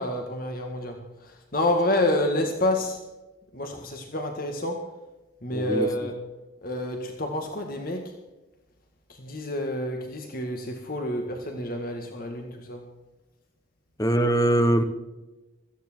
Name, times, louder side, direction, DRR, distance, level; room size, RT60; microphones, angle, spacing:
voice 1, 0.0-3.0 3.5-4.9 5.4-6.2 6.6-8.1 9.1-12.9, left 1 dB, 50° left, 3 dB, 1.9 m, -28 dB
voice 2, 5.5-5.9 14.0-14.8, right 1 dB, 20° left, 7 dB, 1.3 m, -22 dB
17.5 x 14.5 x 4.5 m, 1.1 s
head